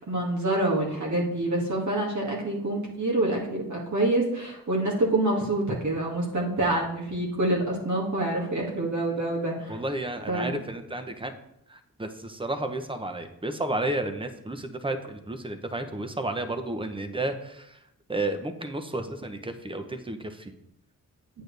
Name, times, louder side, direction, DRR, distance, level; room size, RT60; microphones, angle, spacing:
voice 1, 0.0-9.8 10.3-10.5, right 2 dB, 50° right, -3 dB, 2.3 m, -27 dB
voice 2, 9.7-11.3 11.7-17.8 18.1-20.5, right 2 dB, 15° right, 8 dB, 0.9 m, -32 dB
8.8 x 8.0 x 3.4 m, 0.79 s
cardioid pair, 90°, 37 cm